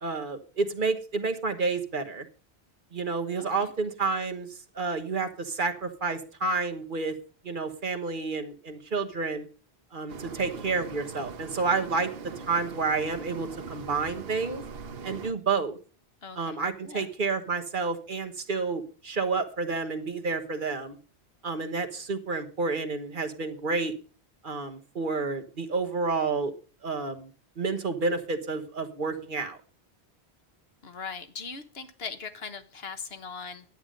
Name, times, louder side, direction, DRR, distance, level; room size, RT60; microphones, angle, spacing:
voice 1, 0.0-2.3 2.9-4.5 4.7-7.1 7.4-9.5 9.9-12.1 12.4-14.6 15.0-15.8 16.3-21.0 21.4-23.9 24.4-26.5 26.8-27.3 27.6-29.6, right 4 dB, 55° right, 6 dB, 1.3 m, -30 dB
voice 2, 3.4-3.7 16.2-16.6 16.8-17.1 30.8-33.6, left 5 dB, 70° left, 9 dB, 1.4 m, -40 dB
sound 1, 10.1-15.3, right 5 dB, 70° right, 1.1 m, -41 dB
11.0 x 8.8 x 5.2 m, 0.37 s
omnidirectional pair, 1.1 m